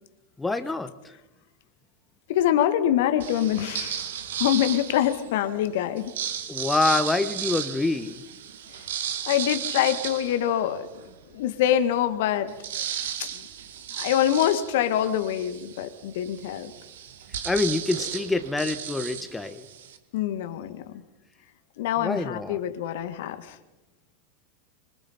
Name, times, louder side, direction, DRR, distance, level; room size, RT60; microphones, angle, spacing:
voice 1, 0.4-1.1 6.5-8.2 17.4-19.7 22.0-22.6, left 3 dB, 10° left, 10 dB, 1.5 m, -26 dB
voice 2, 2.3-4.1 4.4-6.1 9.2-10.9 11.3-12.5 13.2-13.4 13.9-16.7 20.1-21.0 21.8-23.6, left 11 dB, 60° left, 10 dB, 1.7 m, -25 dB
sound 1, 3.2-5.4 5.9-11.1 11.6-11.7 12.0-20.0, right 9 dB, 70° right, 2.1 m, -34 dB
26.5 x 26.0 x 4.4 m, 1.0 s
figure-of-eight pair, 85°, 0 cm